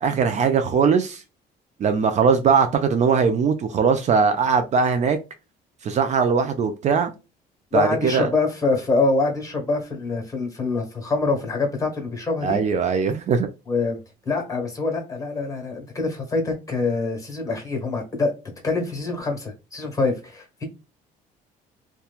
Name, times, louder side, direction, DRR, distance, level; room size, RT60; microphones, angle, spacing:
voice 1, 0.0-1.2 1.8-5.2 5.8-7.1 7.7-8.3 12.4-13.5, right 6 dB, 45° right, 0.4 m, -20 dB
voice 2, 7.7-12.6 13.7-14.0 14.2-18.3 18.6-20.7, left 3 dB, 20° left, 1.2 m, -25 dB
2.9 x 2.2 x 2.3 m
cardioid pair, 110°, 17 cm